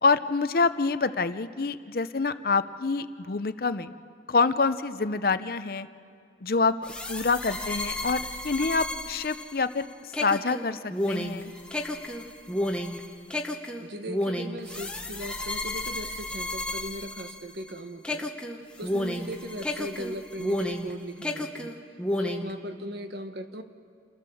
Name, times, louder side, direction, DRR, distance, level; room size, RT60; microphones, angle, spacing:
voice 1, 0.0-3.9 4.3-5.9 6.4-6.7 7.1-9.8 10.2-11.5, left 4 dB, 55° left, 12 dB, 0.7 m, -26 dB
sound 1, 6.8-17.7 18.0-20.9 21.2-22.5, left 1 dB, 5° left, 1.0 m, -32 dB
voice 2, 13.8-18.3 18.8-21.7 22.2-23.6, equal, 65° right, 7 dB, 1.3 m, -38 dB
29.0 x 15.0 x 7.1 m, 2.3 s
head